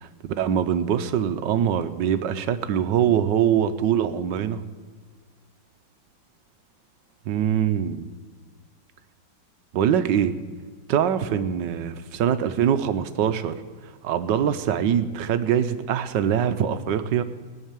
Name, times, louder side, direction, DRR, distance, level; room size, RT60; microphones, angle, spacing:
voice 1, 0.4-4.6 7.3-8.1 9.7-10.3 10.9-13.6 14.0-17.2, right 9 dB, 70° right, 11 dB, 1.3 m, -23 dB
18.0 x 6.6 x 9.0 m, 1.5 s
omnidirectional pair, 2.2 m